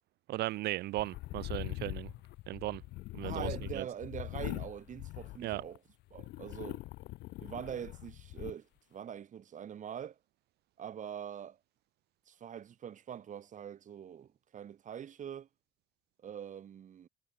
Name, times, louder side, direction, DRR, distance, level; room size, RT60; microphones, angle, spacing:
voice 1, 0.3-2.1 2.5-2.8 3.1-3.8 5.4-5.6, right 16 dB, 75° right, 1.1 m, -36 dB
sound 1, 1.0-5.8 6.1-8.5, left 19 dB, 80° left, 0.9 m, -42 dB
voice 2, 3.2-5.8 6.1-6.8 7.4-10.2 10.8-11.6 12.3-15.5 16.2-17.1, right 9 dB, 50° right, 3.4 m, -43 dB
cardioid pair, 110°, 17 cm